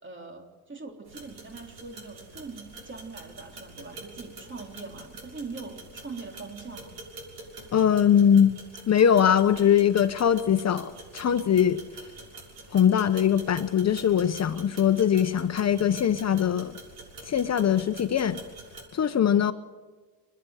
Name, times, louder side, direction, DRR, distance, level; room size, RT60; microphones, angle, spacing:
voice 1, 0.0-6.9, right 4 dB, 30° right, 3 dB, 3.6 m, -42 dB
sound 1, 1.0-18.8, right 2 dB, 75° right, 6.8 m, -46 dB
voice 2, 7.7-8.6 8.9-11.8 12.7-16.8 17.3-18.4 18.9-19.5, left 9 dB, 45° left, 10 dB, 0.9 m, -22 dB
28.5 x 10.5 x 9.8 m, 1.3 s
cardioid pair, 105°, 38 cm